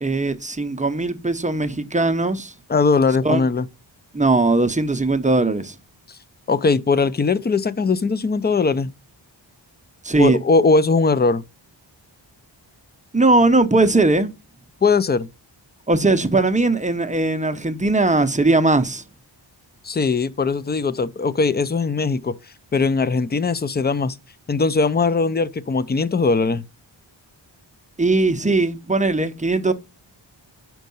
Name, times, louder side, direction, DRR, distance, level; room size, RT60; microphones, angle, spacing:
voice 1, 0.0-2.5 3.2-3.4 4.1-5.7 10.0-10.4 13.1-14.3 15.9-19.0 28.0-29.7, right 2 dB, 15° right, 0.6 m, -19 dB
voice 2, 2.7-3.7 6.1-6.2 6.5-8.9 10.2-11.4 14.8-15.3 19.8-22.4 22.7-24.2 24.5-26.6, left 4 dB, 25° left, 0.4 m, -20 dB
5.2 x 4.6 x 5.3 m
wide cardioid pair, 90°, 46 cm